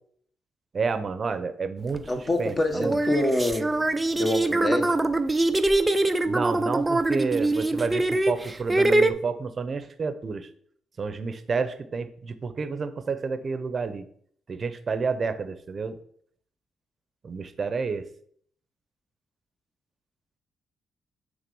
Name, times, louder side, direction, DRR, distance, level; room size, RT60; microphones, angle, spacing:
voice 1, 0.7-2.1 2.4-3.0 6.3-10.5 11.0-14.1 14.5-16.0 17.2-18.1, right 4 dB, 40° right, 11 dB, 0.8 m, -30 dB
sound 1, 1.9-2.1 2.7-9.1, right 2 dB, 15° right, 0.6 m, -23 dB
voice 2, 2.1-3.7 4.1-5.0, left 2 dB, 30° left, 5 dB, 1.4 m, -26 dB
9.3 x 3.7 x 5.4 m, 0.63 s
cardioid pair, 90°, 0 cm